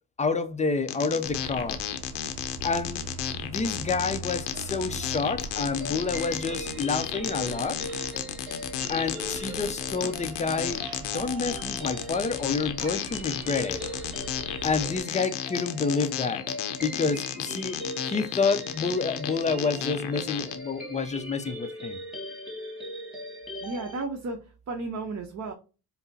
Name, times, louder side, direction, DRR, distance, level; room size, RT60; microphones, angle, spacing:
voice 1, 0.2-1.8 2.6-3.1 3.3-7.8 8.9-13.8 14.6-16.5 16.8-17.8 18.0-22.0, left 4 dB, 20° left, 0.4 m, -29 dB
sound 1, 0.9-20.6, left 10 dB, 90° left, 0.6 m, -33 dB
sound 2, 1.2-15.0, right 3 dB, 65° right, 1.0 m, -43 dB
sound 3, 5.7-24.0, equal, ahead, 1.7 m, -40 dB
voice 2, 23.6-25.5, right 3 dB, 40° right, 0.8 m, -34 dB
5.4 x 2.0 x 2.6 m
supercardioid pair, 80°, 42 cm